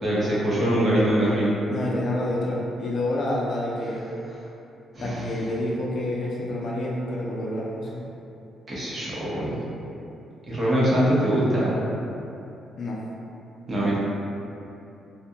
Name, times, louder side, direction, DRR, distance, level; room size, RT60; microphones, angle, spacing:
voice 1, 0.0-1.5 4.9-5.3 8.7-9.6 10.5-11.8 13.7-14.0, right 1 dB, 35° right, -8 dB, 0.8 m, -23 dB
voice 2, 1.7-4.0 5.0-8.0 12.8-13.0, left 1 dB, 60° left, -4 dB, 0.5 m, -28 dB
2.4 x 2.2 x 2.7 m, 2.8 s
cardioid pair, 90°, 0 cm